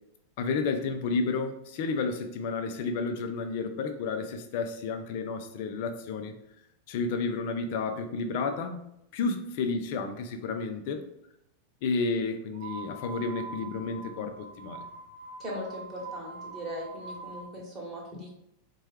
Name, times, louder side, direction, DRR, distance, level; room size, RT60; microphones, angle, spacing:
voice 1, 0.4-6.4 6.9-8.8 9.1-11.0 11.8-14.9, left 4 dB, 50° left, 6 dB, 0.5 m, -31 dB
sound 1, 12.5-17.5, right 3 dB, 60° right, 0.4 m, -43 dB
voice 2, 15.4-18.3, equal, 20° right, -3 dB, 1.3 m, -39 dB
4.2 x 2.3 x 3.2 m, 0.78 s
figure-of-eight pair, 90°, 0 cm